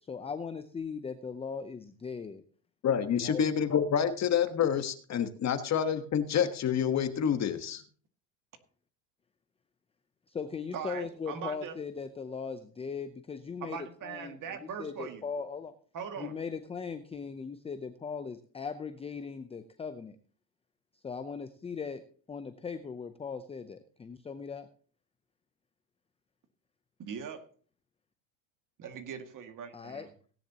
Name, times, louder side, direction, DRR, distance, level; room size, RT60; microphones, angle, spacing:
voice 1, 0.0-2.4 3.2-3.4 10.3-14.4 14.8-15.7 16.2-20.2 21.0-22.0 22.3-24.7 29.7-30.1, left 5 dB, 10° left, 11 dB, 0.6 m, -39 dB
voice 2, 2.8-7.8, left 8 dB, 35° left, 9 dB, 1.4 m, -28 dB
voice 3, 10.7-11.8 13.6-15.2 15.9-16.3 27.0-27.5 28.8-30.1, right 7 dB, 40° right, 7 dB, 2.2 m, -40 dB
17.5 x 10.0 x 2.9 m, 0.43 s
supercardioid pair, 120°, 50 cm